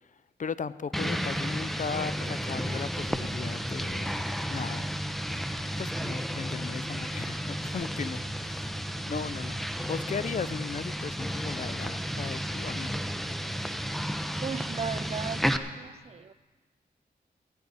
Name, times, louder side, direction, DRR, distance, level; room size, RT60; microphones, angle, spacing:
voice 1, 0.4-4.2 4.5-4.9 5.8-8.8 9.1-13.0, left 6 dB, 50° left, 0.5 m, -37 dB
sound 1, 0.9-15.6, equal, ahead, 0.7 m, -32 dB
voice 2, 14.4-15.5 15.8-16.3, right 7 dB, 40° right, 0.4 m, -36 dB
16.0 x 14.0 x 4.0 m
cardioid pair, 70°, 18 cm